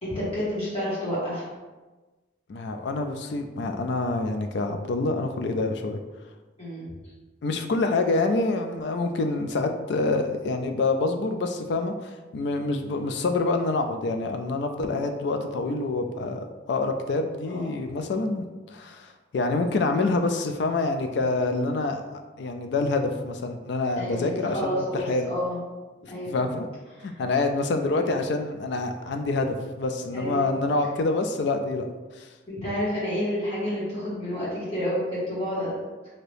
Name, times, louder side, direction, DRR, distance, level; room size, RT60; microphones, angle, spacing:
voice 1, 0.0-1.5 6.6-6.9 17.5-17.8 24.0-25.6 26.1-26.4 27.0-27.1 30.1-30.5 32.5-35.8, equal, 30° left, -9 dB, 1.4 m, -29 dB
voice 2, 2.5-6.0 7.4-25.3 26.0-26.7 27.0-31.9 32.2-32.3, left 3 dB, 60° left, 6 dB, 0.3 m, -27 dB
2.8 x 2.6 x 3.3 m, 1.2 s
head